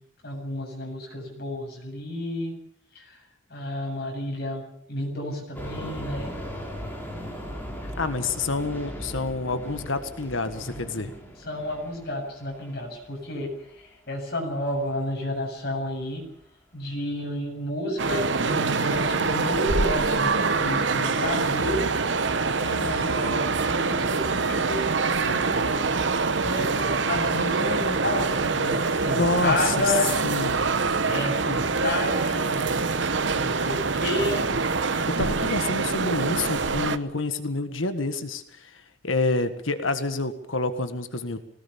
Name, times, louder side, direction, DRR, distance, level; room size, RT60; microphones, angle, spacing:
voice 1, 0.2-2.6 2.9-3.2 3.5-6.3 11.4-13.5 14.1-16.2 16.7-21.9 22.6-25.9 26.4-30.1 31.1-34.5, left 1 dB, 55° left, 0 dB, 7.5 m, -31 dB
sound 1, 5.5-14.1 14.6-15.0 15.3-15.4 16.0-16.1 16.4-16.5, equal, 10° left, 5.1 m, -38 dB
voice 2, 8.0-11.1 29.1-29.7 30.2-30.6 35.1-38.7 39.0-41.4, left 3 dB, 80° left, 9 dB, 1.7 m, -28 dB
sound 2, 18.0-37.0, right 4 dB, 65° right, 1.0 m, -25 dB
21.5 x 18.5 x 7.2 m, 0.66 s
head